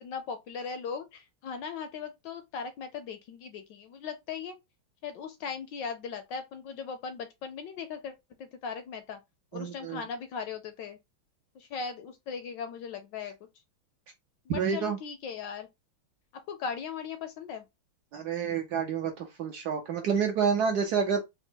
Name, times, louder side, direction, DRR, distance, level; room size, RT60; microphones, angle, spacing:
voice 1, 0.0-4.6 5.0-8.1 8.4-9.2 9.5-11.0 11.6-13.3 14.5-15.7 16.5-17.6, left 6 dB, 75° left, 1.1 m, -38 dB
voice 2, 9.5-10.0 14.5-15.0 18.1-21.2, right 6 dB, 70° right, 0.9 m, -28 dB
4.1 x 2.1 x 4.3 m
omnidirectional pair, 2.3 m